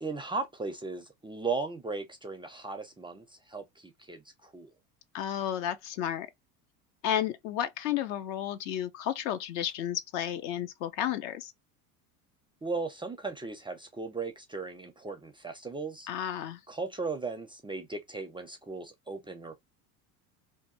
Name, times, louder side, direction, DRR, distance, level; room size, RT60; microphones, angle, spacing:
voice 1, 0.0-4.7 12.6-16.1 16.7-19.6, right 4 dB, 10° right, 0.4 m, -37 dB
voice 2, 5.1-6.3 7.0-11.5 16.1-16.6, left 10 dB, 60° left, 0.7 m, -32 dB
2.7 x 2.2 x 2.6 m
hypercardioid pair, 85°, 45 cm